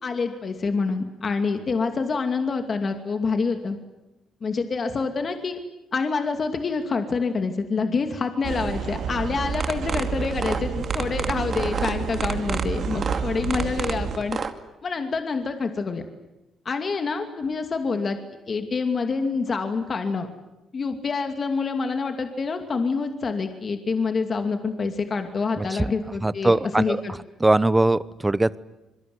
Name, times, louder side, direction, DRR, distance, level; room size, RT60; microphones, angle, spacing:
voice 1, 0.0-3.8 4.4-5.6 5.9-14.4 14.8-16.0 16.6-18.2 18.5-20.3 20.7-27.1, left 4 dB, 40° left, 6 dB, 2.6 m, -27 dB
sound 1, 8.4-14.2, right 6 dB, 70° right, 4.8 m, -29 dB
sound 2, 9.5-14.5, right 5 dB, 40° right, 2.2 m, -29 dB
voice 2, 25.6-25.9 26.2-27.0 27.4-28.6, right 2 dB, 15° right, 17 dB, 0.9 m, -21 dB
26.5 x 22.5 x 9.6 m, 0.97 s
cardioid pair, 90°, 0 cm